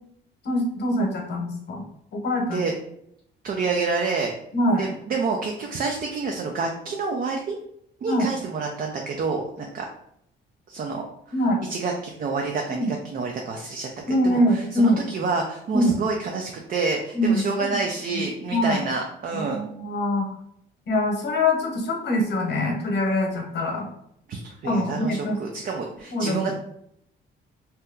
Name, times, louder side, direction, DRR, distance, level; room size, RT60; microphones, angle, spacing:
voice 1, 0.4-1.8 2.1-2.6 4.5-4.8 8.1-8.3 11.3-11.6 12.8-12.9 14.1-15.0 15.7-16.0 17.1-17.4 18.1-18.8 19.3-20.3 20.9-23.9 24.6-25.4 26.1-26.4, left 1 dB, 60° left, 1 dB, 0.9 m, -23 dB
voice 2, 3.4-4.3 4.8-7.6 8.0-9.9 10.7-11.0 11.7-19.6 24.3-26.6, right 4 dB, 45° right, 2 dB, 0.5 m, -28 dB
2.8 x 2.1 x 3.6 m, 0.74 s
cardioid pair, 90°, 20 cm